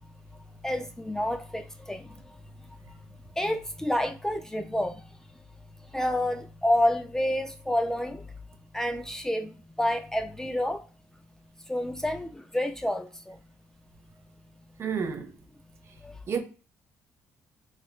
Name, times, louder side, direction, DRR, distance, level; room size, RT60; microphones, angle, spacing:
voice 1, 0.6-2.2 3.4-5.0 5.9-8.3 8.7-10.8 11.7-13.4 16.0-16.1, left 1 dB, 10° left, 0.4 m, -29 dB
voice 2, 14.8-15.3 16.3-16.4, right 6 dB, 50° right, 0.6 m, -30 dB
3.1 x 3.0 x 2.3 m
cardioid pair, 90°, 6 cm